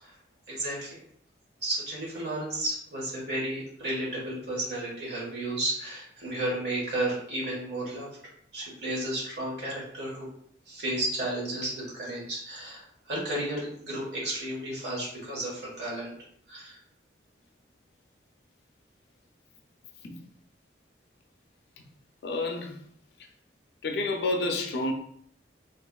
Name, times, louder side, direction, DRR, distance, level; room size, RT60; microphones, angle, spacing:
voice 1, 0.5-1.0 1.6-8.1 8.5-10.3 10.7-16.1 16.5-16.8, right 1 dB, 65° right, 1.3 m, -33 dB
voice 2, 22.2-22.8 23.8-24.9, left 2 dB, 60° left, 0.4 m, -29 dB
2.9 x 2.4 x 2.2 m
head